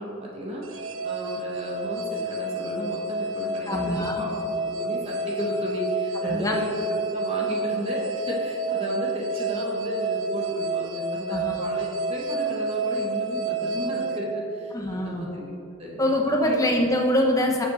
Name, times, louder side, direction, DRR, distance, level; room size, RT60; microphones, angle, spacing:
voice 1, 0.0-15.5 15.8-16.0 16.3-16.6, right 1 dB, 30° right, -3 dB, 1.5 m, -33 dB
sound 1, 0.6-15.0, right 2 dB, 70° right, 0.7 m, -29 dB
voice 2, 3.7-4.3 6.2-6.6 11.3-11.7 14.7-15.3 16.0-17.7, left 1 dB, 15° left, 0 dB, 0.9 m, -24 dB
7.0 x 6.9 x 6.4 m, 2.5 s
head